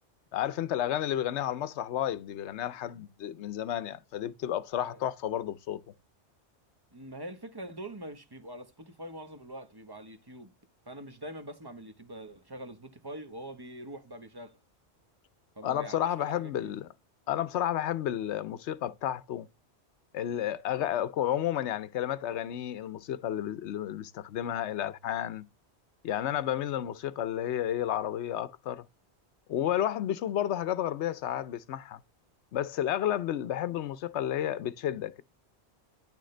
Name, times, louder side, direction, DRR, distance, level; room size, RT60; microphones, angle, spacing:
voice 1, 0.3-5.8 15.6-16.9 17.3-19.5 20.1-25.5 26.0-28.9 29.5-32.0 32.5-35.2, left 11 dB, 85° left, 0.9 m, -31 dB
voice 2, 6.9-10.5 10.9-14.6 15.5-16.7, right 1 dB, 20° right, 1.0 m, -44 dB
10.5 x 6.3 x 3.3 m
omnidirectional pair, 1.1 m